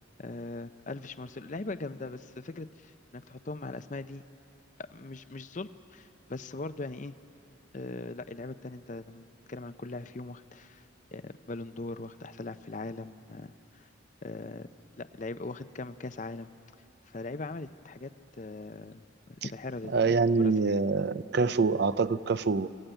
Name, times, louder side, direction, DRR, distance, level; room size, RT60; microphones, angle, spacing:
voice 1, 0.2-4.2 4.8-7.1 7.7-9.2 9.5-10.9 11.1-13.9 14.2-14.7 15.0-16.5 17.1-18.1 18.4-20.7, left 2 dB, 40° left, 12 dB, 0.6 m, -40 dB
voice 2, 19.9-22.7, right 4 dB, 55° right, 15 dB, 0.5 m, -25 dB
24.0 x 15.5 x 9.0 m, 2.6 s
head